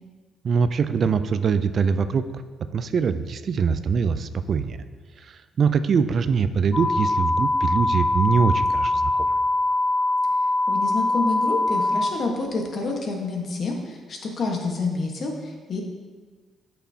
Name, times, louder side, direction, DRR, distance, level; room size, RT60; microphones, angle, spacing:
voice 1, 0.4-2.2 2.6-4.8 5.2-9.4, right 5 dB, 55° right, 11 dB, 0.3 m, -23 dB
sound 1, 6.7-12.1, left 2 dB, 25° left, 0.6 m, -22 dB
voice 2, 10.7-15.8, left 3 dB, 55° left, 1 dB, 1.3 m, -28 dB
8.1 x 6.1 x 2.8 m, 1.4 s
cardioid pair, 90°, 0 cm